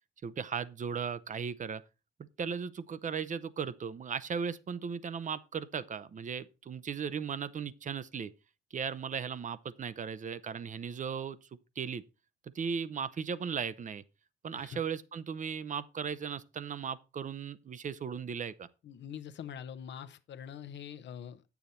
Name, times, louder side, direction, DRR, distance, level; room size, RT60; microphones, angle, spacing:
voice 1, 0.2-1.8 2.2-8.3 8.7-11.4 11.8-12.0 12.5-14.0 14.4-18.7, right 6 dB, 40° right, 0.7 m, -37 dB
voice 2, 18.8-21.4, left 8 dB, 65° left, 0.8 m, -44 dB
9.1 x 7.1 x 4.2 m
cardioid pair, 90°, 20 cm